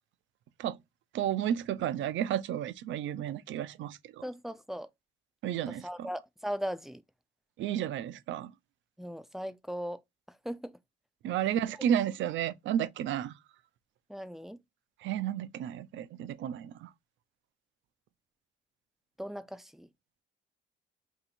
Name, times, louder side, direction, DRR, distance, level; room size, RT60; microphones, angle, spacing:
voice 1, 1.1-4.2 5.4-6.1 7.6-8.5 11.2-13.4 15.0-16.9, right 10 dB, 70° right, 0.4 m, -32 dB
voice 2, 4.2-4.9 5.7-7.0 9.0-10.0 10.4-10.8 14.1-14.6 19.2-19.9, equal, ahead, 0.3 m, -38 dB
2.8 x 2.7 x 4.1 m
cardioid pair, 90°, 20 cm